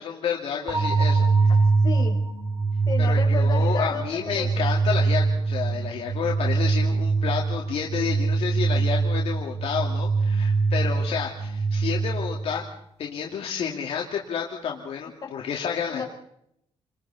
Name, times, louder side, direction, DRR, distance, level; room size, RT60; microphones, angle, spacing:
voice 1, 0.0-1.5 3.0-12.7 13.0-16.0, left 7 dB, 65° left, -1 dB, 2.4 m, -30 dB
sound 1, 0.7-12.6, right 4 dB, 30° right, 2.5 m, -23 dB
voice 2, 1.8-2.2 2.9-4.7 15.2-15.4 15.9-16.0, left 5 dB, 40° left, 2 dB, 4.2 m, -33 dB
30.0 x 20.5 x 4.2 m, 0.74 s
cardioid pair, 115°, 10 cm